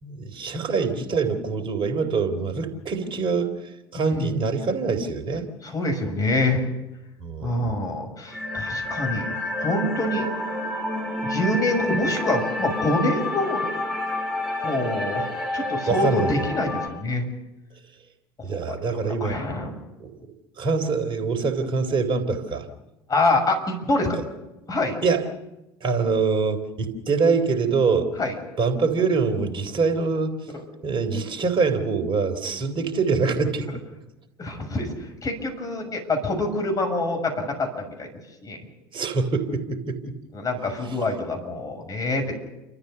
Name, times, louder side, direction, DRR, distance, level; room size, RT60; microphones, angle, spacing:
voice 1, 0.0-3.6 3.9-5.5 7.2-7.8 15.9-16.4 18.4-19.4 20.0-20.3 20.6-22.7 25.0-25.3 25.8-28.1 28.6-30.4 30.8-33.7 38.9-40.1 40.8-41.0, right 4 dB, 40° right, 7 dB, 3.6 m, -24 dB
voice 2, 3.9-4.3 5.6-6.6 7.4-9.3 9.6-10.2 11.2-13.7 14.6-15.3 15.5-17.3 18.5-19.8 23.1-24.2 24.7-25.0 28.2-28.3 30.5-30.6 34.4-34.9 35.2-38.1 38.4-38.6 40.3-42.3, left 2 dB, 30° left, 3 dB, 6.5 m, -26 dB
sound 1, 8.3-16.9, left 1 dB, ahead, 7.1 m, -29 dB
29.5 x 13.5 x 6.9 m, 0.97 s
hypercardioid pair, 70°, 13 cm